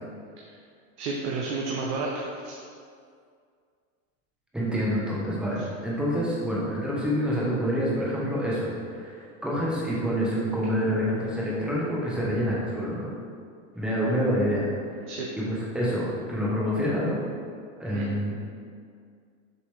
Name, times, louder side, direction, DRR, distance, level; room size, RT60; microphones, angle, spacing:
voice 1, 1.0-2.6 5.6-5.7 15.1-15.3 17.9-18.0, right 3 dB, 65° right, -2 dB, 0.8 m, -31 dB
voice 2, 4.5-13.1 13.7-15.1 15.4-17.2 17.8-18.3, equal, ahead, -7 dB, 0.7 m, -27 dB
6.8 x 4.7 x 3.2 m, 2.2 s
supercardioid pair, 170°, 38 cm